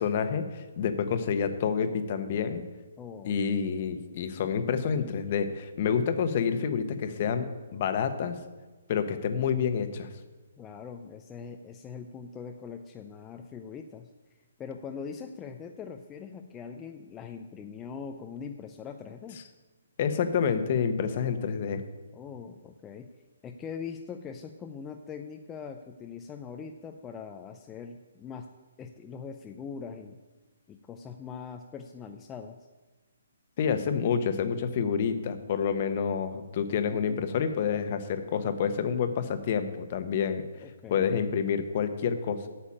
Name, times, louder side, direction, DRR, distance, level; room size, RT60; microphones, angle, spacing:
voice 1, 0.0-2.6 3.2-7.5 7.7-8.4 8.9-10.1 20.0-21.8 33.6-40.4 40.9-42.5, left 7 dB, 40° left, 9 dB, 1.0 m, -28 dB
voice 2, 3.0-3.4 10.6-14.1 14.6-19.4 22.1-23.1 23.4-28.5 28.8-30.2 30.7-32.6 36.9-37.3 40.6-41.2, left 6 dB, 15° left, 4 dB, 0.5 m, -42 dB
8.7 x 6.9 x 8.5 m, 1.2 s
hypercardioid pair, 160°, 0 cm